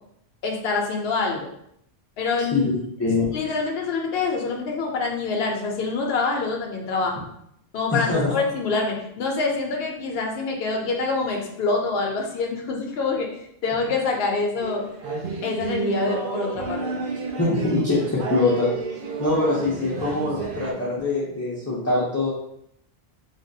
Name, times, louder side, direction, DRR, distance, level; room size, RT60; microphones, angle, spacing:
voice 1, 0.4-1.5 2.2-2.7 3.3-7.2 7.7-14.8 15.4-17.0, left 4 dB, 70° left, 0 dB, 0.8 m, -26 dB
voice 2, 3.0-3.3 7.9-8.3 17.4-18.7 19.2-22.3, left 2 dB, 20° left, -7 dB, 0.5 m, -23 dB
sound 1, 14.6-20.7, right 4 dB, 65° right, 0.7 m, -30 dB
3.4 x 2.3 x 2.6 m, 0.73 s
omnidirectional pair, 1.0 m